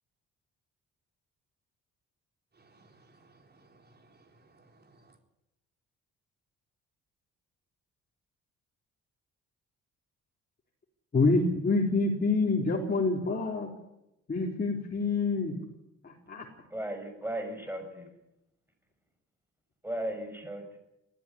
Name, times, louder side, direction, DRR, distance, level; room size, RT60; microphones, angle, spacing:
voice 1, 2.6-5.2, right 2 dB, 35° right, 4 dB, 4.2 m, -61 dB
voice 2, 11.1-13.7 14.3-15.5 16.0-16.5, left 3 dB, 30° left, -2 dB, 4.0 m, -27 dB
voice 3, 16.7-18.1 19.8-20.8, right 1 dB, 5° right, 5 dB, 6.4 m, -36 dB
19.0 x 15.0 x 10.0 m, 0.89 s
cardioid pair, 90°, 30 cm